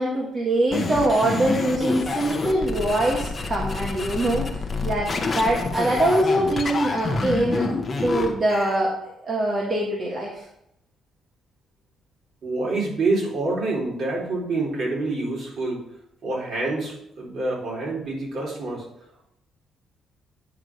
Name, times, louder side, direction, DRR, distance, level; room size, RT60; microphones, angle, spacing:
voice 1, 0.0-4.5 4.8-7.7 8.0-8.9 9.2-10.3, right 1 dB, 40° right, -2 dB, 1.6 m, -23 dB
sound 1, 0.7-8.8, left 3 dB, 35° left, 1.3 m, -28 dB
voice 2, 12.4-15.8 16.2-18.9, right 2 dB, 55° right, -4 dB, 3.8 m, -27 dB
9.4 x 3.7 x 6.3 m, 0.79 s
cardioid pair, 90°, 0 cm